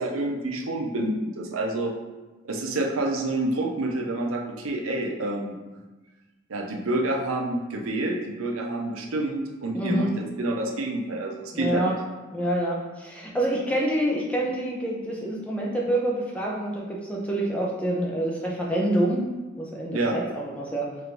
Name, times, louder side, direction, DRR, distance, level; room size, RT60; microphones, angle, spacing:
voice 1, 0.0-1.9 2.4-5.6 6.5-12.0 19.9-20.2, right 2 dB, 75° right, 0 dB, 0.6 m, -28 dB
voice 2, 9.7-10.1 11.5-11.9 12.3-19.2 19.6-20.9, right 1 dB, 5° left, -3 dB, 0.5 m, -27 dB
3.3 x 2.6 x 4.5 m, 1.2 s
head